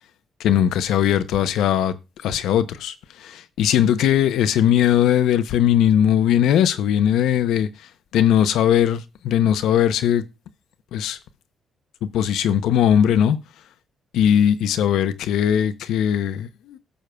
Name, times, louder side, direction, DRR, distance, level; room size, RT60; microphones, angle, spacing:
voice 1, 0.4-1.9 2.2-2.9 3.2-7.7 8.1-10.2 10.9-11.2 12.0-13.4 14.1-16.8, left 10 dB, 85° left, 0.6 m, -19 dB
17.0 x 6.5 x 2.2 m
cardioid pair, 90°, 0 cm